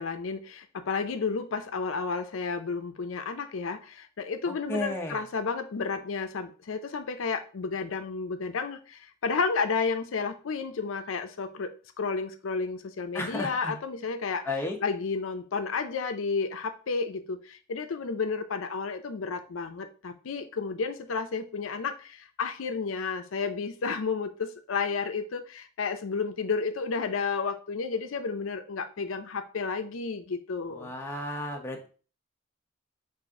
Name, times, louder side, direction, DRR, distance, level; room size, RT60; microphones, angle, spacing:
voice 1, 0.0-14.5 14.8-30.9, left 4 dB, 90° left, 8 dB, 0.5 m, -32 dB
voice 2, 4.5-5.2 13.1-13.8 14.4-14.8 30.7-31.9, left 1 dB, 10° left, 1 dB, 0.8 m, -33 dB
4.1 x 2.5 x 4.7 m, 0.37 s
head